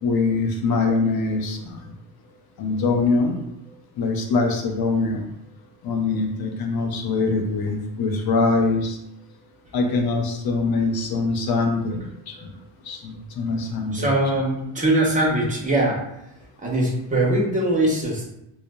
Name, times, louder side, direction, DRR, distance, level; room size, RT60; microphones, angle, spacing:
voice 1, 0.0-1.8 2.6-3.3 4.0-5.2 5.8-9.0 9.7-12.5 12.8-14.1, left 3 dB, 55° left, 2 dB, 0.6 m, -23 dB
voice 2, 13.9-16.0 16.6-18.3, right 1 dB, 15° right, -2 dB, 0.6 m, -21 dB
2.7 x 2.0 x 2.2 m, 0.83 s
cardioid pair, 100°, 46 cm